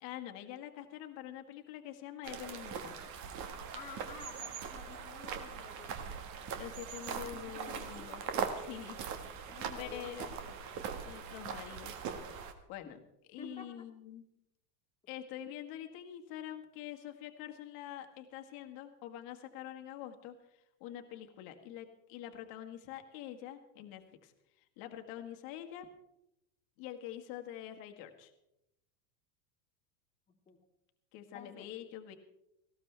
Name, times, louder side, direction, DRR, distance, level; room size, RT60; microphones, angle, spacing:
voice 1, 0.0-3.0 6.5-8.2 8.5-9.1 9.4-9.5 9.8-10.4 10.8-11.9 12.7-13.0 13.3-14.2 15.1-25.9 26.8-28.3 31.1-32.1, left 11 dB, 45° left, 5 dB, 1.8 m, -46 dB
sound 1, 2.2-12.5, right 6 dB, 35° right, 1.7 m, -41 dB
voice 2, 3.7-6.1 7.1-8.4 9.5-10.5 13.4-13.9 30.3-30.6 31.3-31.7, left 4 dB, 15° left, 0 dB, 2.2 m, -51 dB
19.0 x 16.5 x 3.4 m, 0.83 s
supercardioid pair, 150°, 49 cm